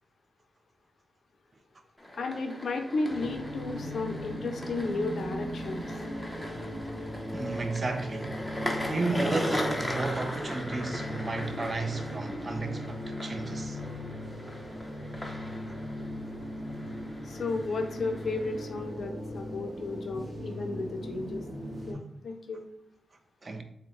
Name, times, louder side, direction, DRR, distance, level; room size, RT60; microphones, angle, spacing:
sound 1, 2.0-18.9, left 1 dB, 5° left, 0.7 m, -39 dB
voice 1, 2.1-5.8 17.2-21.4 21.9-22.6, left 3 dB, 65° left, 0.6 m, -33 dB
sound 2, 3.1-21.9, equal, 25° right, 1.1 m, -38 dB
voice 2, 7.3-8.5 8.9-13.8 23.4-23.6, right 3 dB, 45° right, 0.5 m, -33 dB
3.8 x 2.2 x 3.7 m
supercardioid pair, 50°, 0 cm